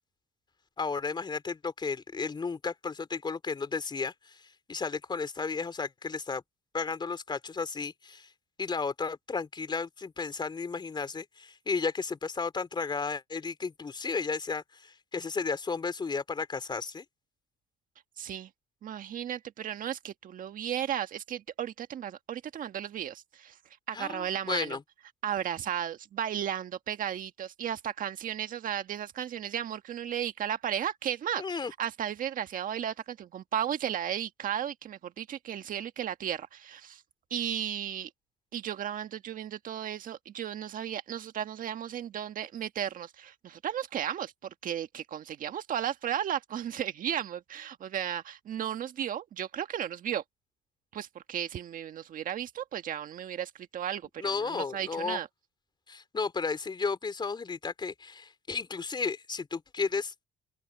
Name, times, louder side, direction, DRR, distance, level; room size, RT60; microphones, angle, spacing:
voice 1, 0.8-4.4 4.7-6.4 6.7-8.3 8.6-17.0 23.9-24.8 31.4-31.7 54.2-55.2 55.9-60.1, left 4 dB, 25° left, 3.5 m, -33 dB
voice 2, 18.2-18.5 18.8-23.6 23.9-24.8 25.2-37.0 37.3-38.1 38.5-44.3 44.6-50.2 50.9-55.3, right 10 dB, 55° right, 1.6 m, -34 dB
open air
cardioid pair, 110°, 17 cm